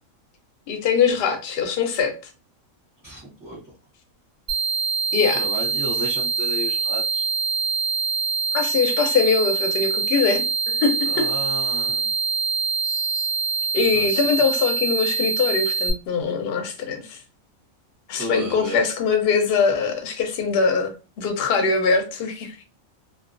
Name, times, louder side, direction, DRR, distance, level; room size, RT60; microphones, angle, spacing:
voice 1, 0.7-2.1 5.1-5.4 8.5-11.3 12.8-13.3 13.7-17.2 18.1-22.6, left 5 dB, 60° left, 0.7 m, -22 dB
voice 2, 3.0-3.6 5.3-7.3 11.1-12.1 13.9-14.4 18.1-18.8, right 1 dB, 20° right, 0.5 m, -33 dB
sound 1, 4.5-15.9, right 5 dB, 70° right, 0.3 m, -24 dB
2.3 x 2.2 x 2.4 m
omnidirectional pair, 1.4 m